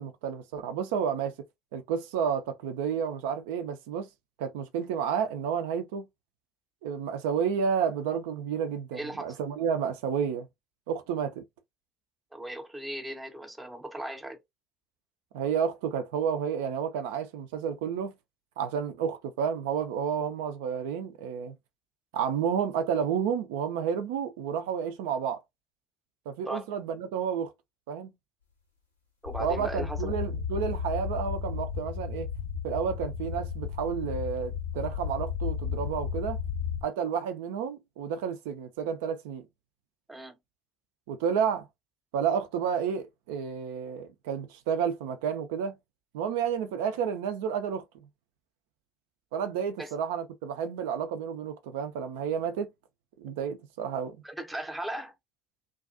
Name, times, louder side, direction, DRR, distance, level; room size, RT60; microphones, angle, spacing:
voice 1, 0.0-1.3 1.7-4.1 4.4-6.0 6.8-10.5 10.9-11.4 15.3-18.1 18.6-21.5 22.1-25.4 26.3-27.5 27.9-28.1 29.4-32.3 32.6-36.4 36.8-39.5 41.1-41.7 42.1-45.8 46.1-47.8 49.3-52.7 53.2-54.2, right 7 dB, 65° right, 0.4 m, -31 dB
voice 2, 8.9-9.4 12.3-14.4 26.4-26.7 29.2-30.1 40.1-40.4 49.8-49.9 54.2-55.1, right 1 dB, 10° right, 0.6 m, -37 dB
sound 1, 29.2-36.8, left 7 dB, 90° left, 0.6 m, -34 dB
2.4 x 2.3 x 2.4 m
figure-of-eight pair, 60°, 0 cm